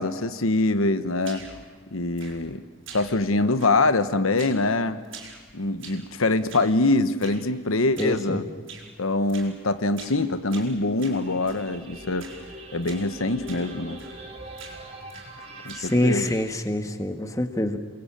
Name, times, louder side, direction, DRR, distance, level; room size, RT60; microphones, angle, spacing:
voice 1, 0.0-1.4 1.9-2.6 2.9-5.0 5.5-8.4 9.0-12.3 12.7-14.0 15.6-16.3, left 2 dB, 85° left, 11 dB, 1.1 m, -24 dB
sound 1, 1.2-1.7 2.2-2.6 2.9-3.3 3.6-4.0 4.4-4.7 5.0-6.1 6.5-6.8 7.2-7.5 8.0-8.2 8.7-8.9 9.3-9.6 9.9-10.2 10.5-11.7 12.2-12.5 12.8-13.1 13.5-13.7 14.0-14.3 14.6-15.4 15.7-16.5, right 5 dB, 75° right, 5.9 m, -45 dB
voice 2, 8.0-8.5 15.7-17.8, left 1 dB, 15° left, 7 dB, 1.6 m, -26 dB
sound 2, 11.0-16.5, right 2 dB, 30° right, 3.6 m, -43 dB
29.5 x 22.0 x 8.9 m, 1.5 s
head